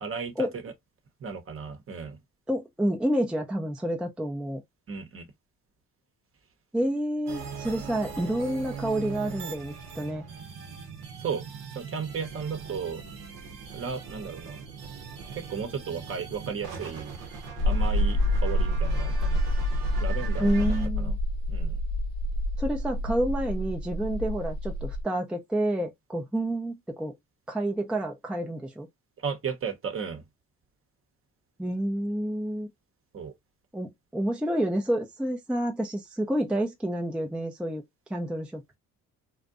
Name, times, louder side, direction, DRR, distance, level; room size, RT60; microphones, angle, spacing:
voice 1, 0.0-0.7 1.2-2.2 4.9-5.3 11.2-11.4 11.7-13.0 13.7-14.6 15.3-17.1 17.6-19.4 20.0-21.1 21.5-21.8 29.2-30.2 33.1-33.3, right 6 dB, 35° right, 0.8 m, -35 dB
voice 2, 2.5-4.6 6.7-10.2 20.4-21.2 22.6-27.1 27.5-28.9 31.6-32.7 33.7-37.8 38.1-38.8, right 1 dB, 5° right, 0.4 m, -29 dB
sound 1, 7.3-20.9, right 6 dB, 70° right, 0.8 m, -40 dB
sound 2, 17.6-25.0, left 1 dB, 80° left, 0.8 m, -27 dB
2.5 x 2.1 x 2.4 m
hypercardioid pair, 60°, 35 cm